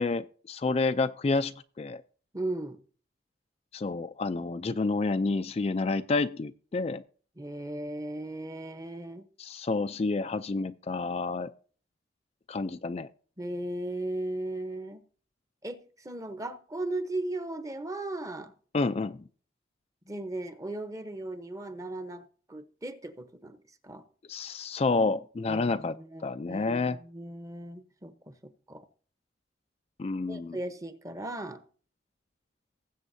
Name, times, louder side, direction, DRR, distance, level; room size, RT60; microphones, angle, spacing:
voice 1, 0.0-2.0 3.7-7.0 9.4-11.5 12.5-13.1 18.7-19.2 24.3-26.0 26.2-27.0 30.0-30.6, left 3 dB, 35° left, 0.4 m, -29 dB
voice 2, 2.3-2.8 7.4-9.3 13.4-15.0 15.6-18.5 20.1-23.6 23.8-24.0 25.5-28.9 30.3-31.6, right 1 dB, 20° right, 0.9 m, -37 dB
19.5 x 8.0 x 2.7 m
head